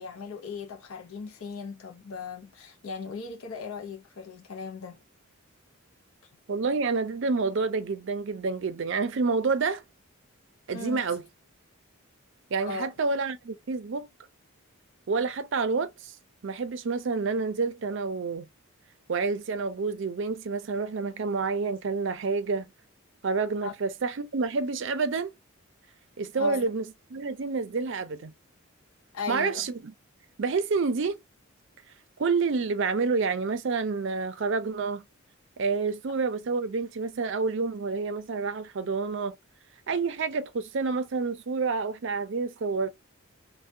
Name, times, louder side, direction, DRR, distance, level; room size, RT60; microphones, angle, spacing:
voice 1, 0.0-5.0 10.7-11.0 12.6-12.9 23.6-23.7 26.3-26.7 29.1-29.7, left 5 dB, 75° left, 0.5 m, -38 dB
voice 2, 6.5-9.8 10.7-11.2 12.5-14.1 15.1-16.2 16.4-18.5 19.1-22.7 23.2-25.3 26.2-28.3 29.3-29.9 30.4-31.2 32.2-35.0 35.6-39.3 39.9-42.9, right 4 dB, 60° right, 0.5 m, -28 dB
3.3 x 2.2 x 2.6 m
head